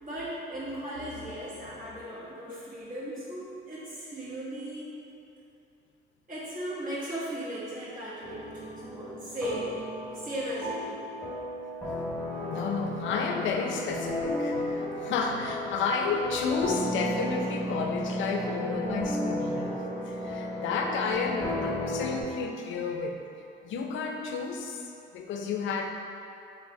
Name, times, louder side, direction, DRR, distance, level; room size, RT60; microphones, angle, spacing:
voice 1, 0.0-4.9 6.3-9.7 10.1-10.9, right 1 dB, 45° right, -9 dB, 1.4 m, -37 dB
sound 1, 8.2-22.2, left 1 dB, 5° left, 1.0 m, -34 dB
voice 2, 11.8-23.2 23.6-24.8 25.1-25.9, left 5 dB, 75° left, 3 dB, 0.5 m, -32 dB
3.4 x 2.4 x 4.4 m, 2.7 s
cardioid pair, 90°, 20 cm